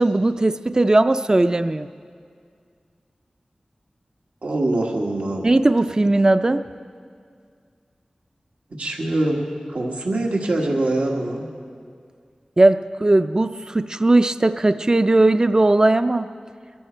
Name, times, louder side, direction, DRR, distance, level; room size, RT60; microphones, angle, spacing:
voice 1, 0.0-1.9 5.4-6.6 12.6-16.3, right 2 dB, 30° right, 10 dB, 0.4 m, -18 dB
voice 2, 4.4-5.5 8.8-9.4 9.7-11.5, right 2 dB, 90° right, -1 dB, 1.5 m, -23 dB
22.0 x 14.0 x 4.4 m, 2.2 s
wide cardioid pair, 60°, 2 cm